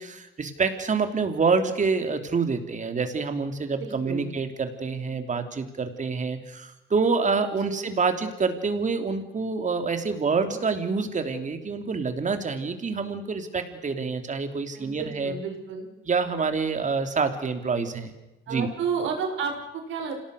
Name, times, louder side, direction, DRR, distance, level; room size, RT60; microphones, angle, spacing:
voice 1, 0.0-15.3 16.1-18.1 18.5-18.7, right 4 dB, 40° right, 7 dB, 3.2 m, -27 dB
voice 2, 3.8-4.3 7.6-7.9 14.7-15.9 18.5-20.2, right 6 dB, 80° right, 3 dB, 5.4 m, -31 dB
26.5 x 18.0 x 6.5 m, 0.99 s
cardioid pair, 90°, 20 cm